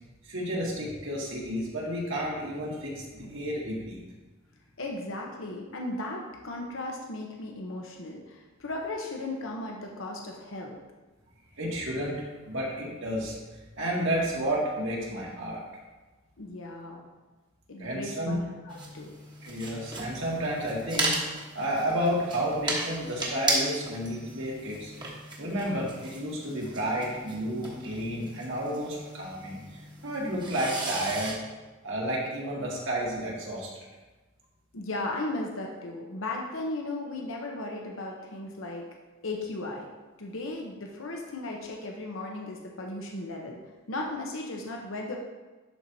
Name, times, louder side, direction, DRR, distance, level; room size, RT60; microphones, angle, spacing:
voice 1, 0.3-4.0 11.6-13.4 13.8-15.6 17.8-18.4 19.4-21.2 21.5-24.9 25.4-29.6 30.0-31.4 31.8-33.7, equal, 65° right, -4 dB, 2.0 m, -31 dB
voice 2, 4.8-10.8 16.4-17.0 17.7-19.1 34.7-38.9 39.2-39.9 40.2-43.6 43.9-45.2, left 2 dB, 70° left, 0 dB, 0.9 m, -36 dB
sound 1, 18.7-31.3, right 2 dB, 20° right, 1.3 m, -36 dB
11.5 x 4.5 x 2.8 m, 1.2 s
head